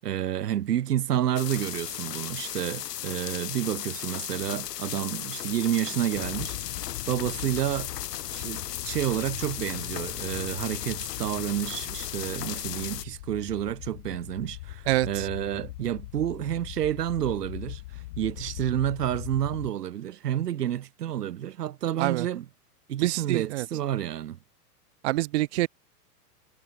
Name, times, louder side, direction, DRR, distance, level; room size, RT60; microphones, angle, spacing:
voice 1, 0.0-6.8 7.1-7.9 8.3-22.5 22.9-24.4, right 11 dB, 75° right, 5.9 m, -30 dB
sound 1, 1.4-13.0, left 11 dB, 80° left, 2.8 m, -36 dB
sound 2, 6.1-19.7, left 18 dB, 55° left, 4.1 m, -41 dB
voice 2, 14.9-15.3 22.0-22.3 23.0-23.7 25.0-25.7, right 17 dB, 45° right, 0.5 m, -26 dB
hypercardioid pair, 145°, 48 cm